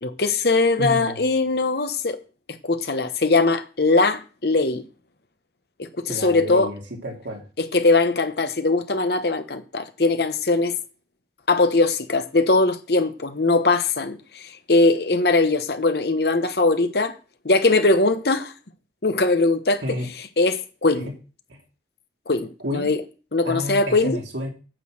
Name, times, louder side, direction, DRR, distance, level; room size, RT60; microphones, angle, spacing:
voice 1, 0.0-2.2 2.6-4.8 5.8-6.7 7.6-10.8 11.5-17.1 17.4-18.5 19.0-19.8 20.4-21.1 22.3-23.0 23.3-24.2, left 3 dB, 60° left, 1.1 m, -21 dB
voice 2, 0.8-1.2 6.1-7.4 19.8-20.1 21.0-21.1 21.5-21.6 22.6-22.9 23.4-24.5, left 1 dB, 85° right, 3.0 m, -30 dB
9.1 x 6.3 x 6.3 m
head